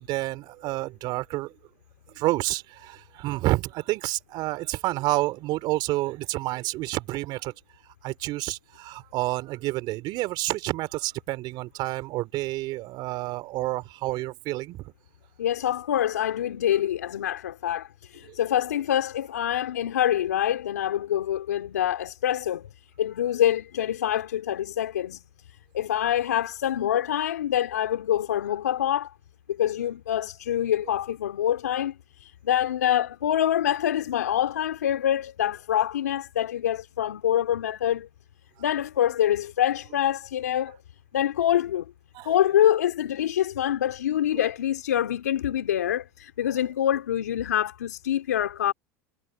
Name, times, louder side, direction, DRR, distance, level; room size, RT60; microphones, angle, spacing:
voice 1, 0.0-1.5 2.1-7.5 8.0-14.9 42.1-42.3, right 18 dB, 55° right, 3.3 m, -29 dB
voice 2, 15.4-22.7 23.0-25.2 25.7-29.1 29.5-38.1 38.6-40.8 41.1-41.9 42.2-48.7, left 11 dB, 85° left, 3.2 m, -25 dB
hypercardioid pair, 90°, 9 cm